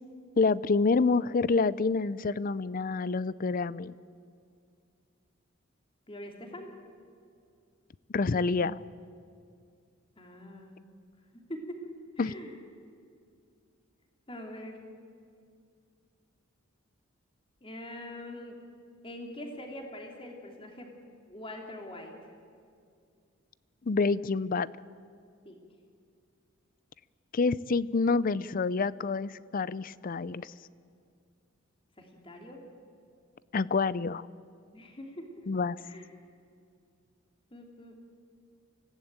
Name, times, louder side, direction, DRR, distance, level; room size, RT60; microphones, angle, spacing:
voice 1, 0.4-3.9 8.1-8.8 12.2-12.3 23.9-24.7 27.3-30.5 33.5-34.3 35.5-35.8, left 4 dB, 40° left, 19 dB, 0.5 m, -27 dB
voice 2, 6.1-6.7 10.2-10.7 11.5-11.9 12.2-12.6 14.3-14.8 17.6-18.6 19.0-20.9 21.3-22.1 25.4-25.6 32.0-32.6 34.7-35.3 35.8-36.0 37.5-38.0, left 1 dB, 25° left, 2 dB, 2.8 m, -43 dB
25.5 x 16.0 x 8.9 m, 2.3 s
head